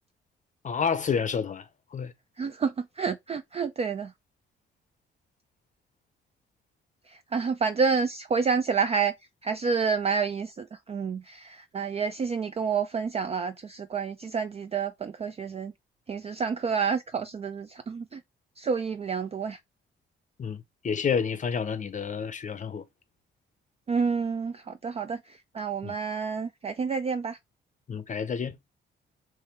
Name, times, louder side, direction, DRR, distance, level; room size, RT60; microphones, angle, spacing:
voice 1, 0.6-1.7 1.9-2.1 20.4-22.8 25.8-25.9 27.9-28.6, left 6 dB, 40° left, 0.6 m, -29 dB
voice 2, 2.4-4.1 7.1-9.1 9.4-15.7 16.1-18.2 18.6-19.6 23.9-27.4, right 5 dB, 30° right, 0.4 m, -29 dB
3.4 x 3.2 x 4.4 m
cardioid pair, 90°, 20 cm